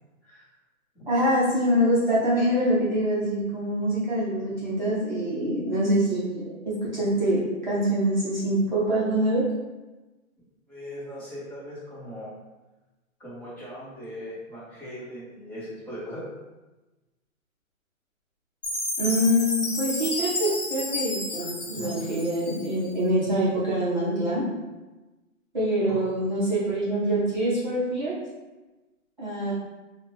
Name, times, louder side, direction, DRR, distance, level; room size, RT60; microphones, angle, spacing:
voice 1, 1.1-6.5 6.8-7.4 7.7-9.4 19.0-24.4 25.5-28.2 29.2-29.5, equal, 35° right, -8 dB, 0.9 m, -25 dB
voice 2, 10.7-12.3 13.2-16.3 21.4-22.0 25.9-26.0, equal, 10° left, -16 dB, 1.2 m, -39 dB
Chime, 18.6-22.9, left 2 dB, 30° left, 0.6 m, -31 dB
4.5 x 2.5 x 3.2 m, 1.1 s
hypercardioid pair, 180°, 41 cm